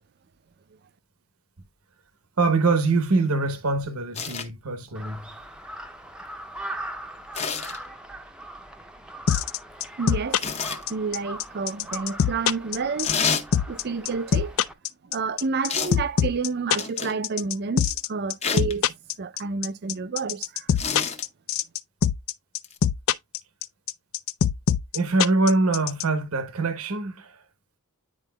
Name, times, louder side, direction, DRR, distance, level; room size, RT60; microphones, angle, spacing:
voice 1, 2.4-5.3 24.9-27.4, right 3 dB, 80° right, 1.0 m, -24 dB
sound 1, 4.1-4.5 7.3-7.8 10.4-10.8 13.0-13.5 15.7-16.0 16.8-17.2 18.4-18.7 20.8-21.2 22.6-22.8, left 5 dB, 30° left, 0.8 m, -28 dB
Crow, 4.9-14.7, right 1 dB, 5° right, 0.6 m, -40 dB
sound 2, 9.3-26.0, left 8 dB, 65° left, 0.4 m, -22 dB
voice 2, 10.0-10.4 10.9-13.2 13.7-14.6 15.0-20.7, right 4 dB, 50° right, 0.5 m, -29 dB
10.0 x 4.4 x 2.2 m
head